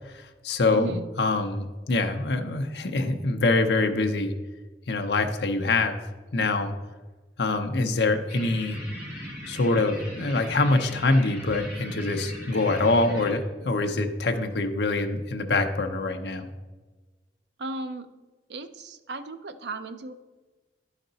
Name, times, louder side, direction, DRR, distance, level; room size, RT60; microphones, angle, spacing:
voice 1, 0.1-4.3 4.9-6.0 6.3-6.7 7.4-8.8 9.5-16.5, left 2 dB, 70° left, 5 dB, 0.8 m, -25 dB
voice 2, 0.7-1.1 17.6-18.2 18.5-20.1, right 2 dB, 75° right, 10 dB, 0.6 m, -36 dB
sound 1, 8.3-13.3, equal, 10° right, 2.5 m, -39 dB
11.5 x 5.2 x 4.0 m, 1.2 s
head